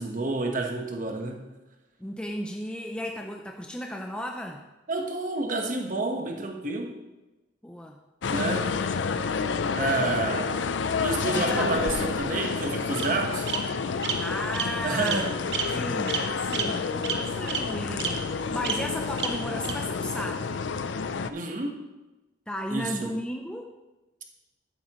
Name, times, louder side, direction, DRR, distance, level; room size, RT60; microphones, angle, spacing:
voice 1, 0.0-1.5 4.9-6.9 8.3-8.8 9.7-10.5 11.0-13.5 14.8-15.3 17.2-17.3 21.3-21.8 22.7-23.1, right 3 dB, 45° right, 3 dB, 1.2 m, -29 dB
voice 2, 2.0-4.6 7.6-8.0 8.5-8.8 11.3-11.7 14.2-15.4 15.7-20.7 22.5-23.7, left 1 dB, 5° left, 2 dB, 0.5 m, -35 dB
sound 1, 8.2-21.3, left 5 dB, 80° left, 0.5 m, -29 dB
Bird vocalization bird call bird song, 11.5-12.3 13.0-13.1 13.5-13.6 14.0-14.1 14.5-14.7 15.0-15.2 15.5-15.6 16.1-16.2 16.5-16.6 17.0-17.1 17.5-17.6 18.0-18.1 18.6-18.7 19.2-19.3 19.6-19.7, right 8 dB, 70° right, 1.0 m, -29 dB
11.5 x 9.3 x 3.1 m, 1.1 s
head